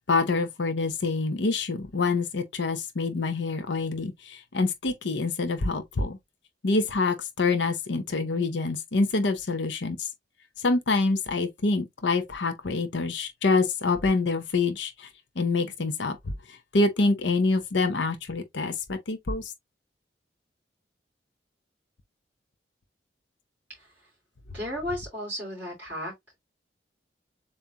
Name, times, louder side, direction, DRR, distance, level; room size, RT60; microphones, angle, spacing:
voice 1, 0.1-6.2 6.6-10.1 10.6-15.1 15.4-16.2 16.7-19.5, left 3 dB, 70° left, 0.7 m, -26 dB
voice 2, 23.7-24.1 24.5-26.1, equal, 10° right, 2.7 m, -34 dB
7.1 x 2.6 x 2.8 m
head